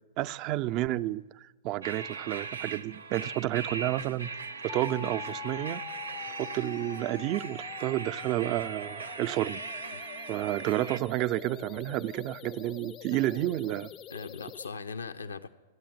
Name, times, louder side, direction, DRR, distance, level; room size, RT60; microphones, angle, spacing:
voice 1, 0.2-4.3 4.6-5.8 6.4-9.6 10.0-13.9, right 15 dB, 40° right, 0.4 m, -31 dB
sound 1, 1.8-11.0, right 4 dB, 85° right, 0.6 m, -40 dB
sound 2, 4.7-14.7, left 11 dB, 30° left, 0.4 m, -45 dB
voice 2, 13.1-13.5 14.1-15.5, left 4 dB, 85° left, 0.5 m, -40 dB
13.0 x 8.8 x 9.4 m
hypercardioid pair, 110°, 0 cm